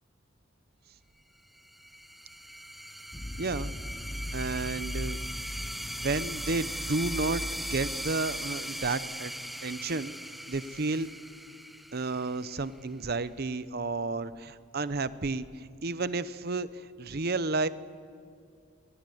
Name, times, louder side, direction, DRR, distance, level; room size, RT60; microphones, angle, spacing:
sound 1, 1.6-12.8, equal, ahead, 0.7 m, -39 dB
sound 2, 3.1-8.8, left 1 dB, 20° left, 0.9 m, -39 dB
voice 1, 3.4-3.7 4.3-5.2 6.0-7.4 7.7-9.3 9.6-10.1 10.5-11.1 11.9-17.7, right 3 dB, 50° right, 14 dB, 0.8 m, -31 dB
27.5 x 20.5 x 7.9 m, 2.3 s
head